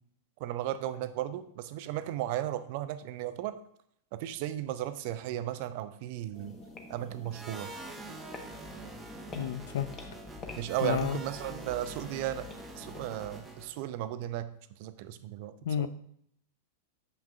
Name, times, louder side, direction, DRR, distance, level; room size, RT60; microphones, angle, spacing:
voice 1, 0.4-3.5 4.1-6.6 6.9-7.7 10.5-12.5 12.8-14.5 14.8-15.9, right 12 dB, 55° right, 12 dB, 0.5 m, -35 dB
sound 1, 6.3-13.4, left 3 dB, 30° left, 1.2 m, -47 dB
sound 2, 7.3-13.9, right 2 dB, 10° right, 0.9 m, -46 dB
voice 2, 9.3-10.0 10.8-11.2 15.6-15.9, left 10 dB, 65° left, 14 dB, 0.4 m, -31 dB
6.9 x 5.9 x 2.5 m, 0.71 s
hypercardioid pair, 100°, 0 cm